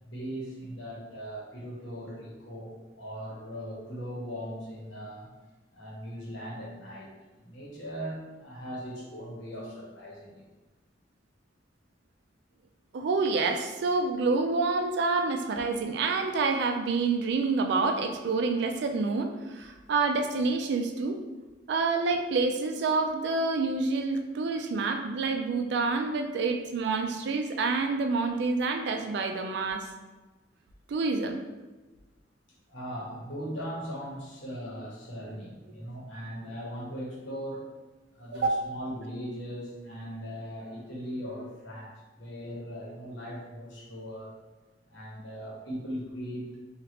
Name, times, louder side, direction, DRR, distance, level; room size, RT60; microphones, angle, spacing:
voice 1, 0.0-5.3 5.7-7.1 7.4-10.5 32.7-37.7 38.1-44.3 44.9-46.5, equal, 85° left, -5 dB, 1.1 m, -39 dB
voice 2, 12.9-21.2 21.7-29.9 30.9-31.4 38.3-38.6, right 4 dB, 65° right, 5 dB, 0.3 m, -28 dB
3.1 x 2.4 x 2.9 m, 1.2 s
head